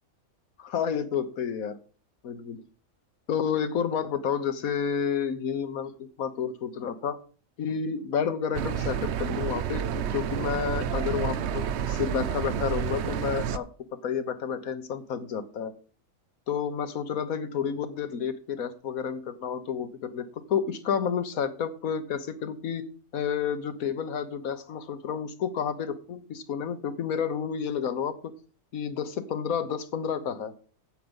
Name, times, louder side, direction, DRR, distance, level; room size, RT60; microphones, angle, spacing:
voice 1, 0.6-1.8 2.2-2.6 3.3-7.2 7.6-13.7 14.0-15.7 16.5-22.8 23.1-28.3 28.7-30.6, left 7 dB, 75° left, 12 dB, 1.5 m, -30 dB
sound 1, 8.5-13.6, right 8 dB, 60° right, 0.8 m, -30 dB
9.2 x 8.5 x 5.3 m, 0.39 s
omnidirectional pair, 1.5 m